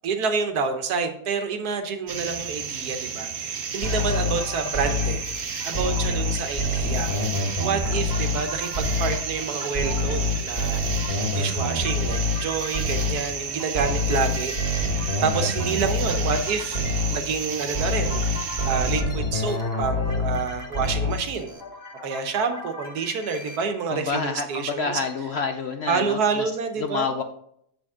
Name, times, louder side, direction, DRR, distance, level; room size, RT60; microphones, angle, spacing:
voice 1, 0.0-7.1 7.6-10.8 11.3-16.8 17.1-21.6 22.0-25.0 25.9-27.1, right 5 dB, 80° right, 7 dB, 1.5 m, -28 dB
sound 1, 2.1-19.0, right 6 dB, 50° right, 1.0 m, -32 dB
sound 2, 3.8-5.3 5.7-8.5 8.7-9.3 9.7-13.3 13.7-16.5 16.7-17.3 17.7-20.5 20.7-21.3, left 2 dB, 35° left, 1.8 m, -26 dB
sound 3, 3.8-23.7, left 2 dB, 15° left, 1.2 m, -41 dB
voice 2, 23.9-26.5 26.8-27.2, left 5 dB, 65° left, 6 dB, 0.6 m, -28 dB
7.4 x 7.1 x 3.6 m, 0.71 s
omnidirectional pair, 1.7 m